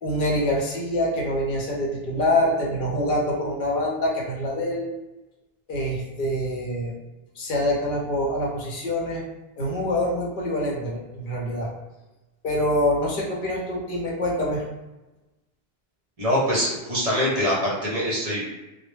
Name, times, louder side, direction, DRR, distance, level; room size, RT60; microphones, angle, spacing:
voice 1, 0.0-4.9 5.7-7.0 7.4-9.2 9.6-11.7 12.4-14.6, left 1 dB, 55° left, -2 dB, 0.8 m, -25 dB
voice 2, 16.2-18.4, equal, 40° right, -6 dB, 0.7 m, -24 dB
2.1 x 2.1 x 3.1 m, 1.1 s
omnidirectional pair, 1.1 m